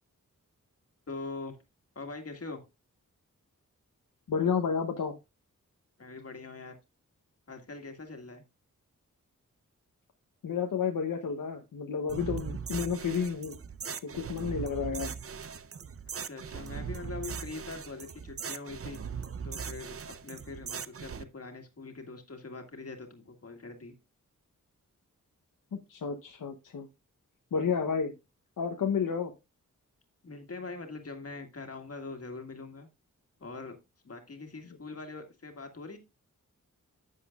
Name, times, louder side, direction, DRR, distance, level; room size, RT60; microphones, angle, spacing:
voice 1, 1.1-1.6 2.0-2.6 6.0-6.7 7.5-8.4 14.4-14.6 16.2-19.0 19.4-20.0 20.2-23.9 30.2-32.9 33.4-33.8 34.0-36.0, left 3 dB, 50° left, 5 dB, 1.9 m, -43 dB
voice 2, 4.3-5.1 10.4-13.6 14.0-15.1 25.9-26.9 27.5-28.1 28.6-29.3, left 6 dB, 90° left, 4 dB, 0.9 m, -31 dB
sound 1, 12.1-21.2, right 6 dB, 45° right, 0.6 m, -39 dB
11.0 x 7.5 x 2.4 m, 0.24 s
wide cardioid pair, 80°, 32 cm